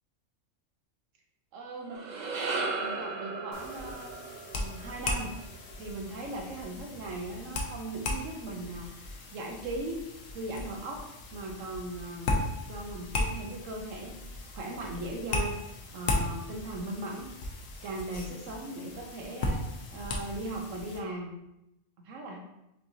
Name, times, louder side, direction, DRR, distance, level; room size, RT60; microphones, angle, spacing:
voice 1, 1.5-2.0 2.8-4.2 4.5-5.3 5.8-10.1 10.3-12.3 12.7-15.6 15.9-17.3 17.8-21.3 22.0-22.4, right 2 dB, 75° right, 1 dB, 1.1 m, -38 dB
sound 1, 1.7-6.2, right 3 dB, 50° right, 0.5 m, -36 dB
sound 2, 3.5-21.0, left 2 dB, 80° left, 1.1 m, -36 dB
6.4 x 2.9 x 2.6 m, 0.88 s
omnidirectional pair, 1.3 m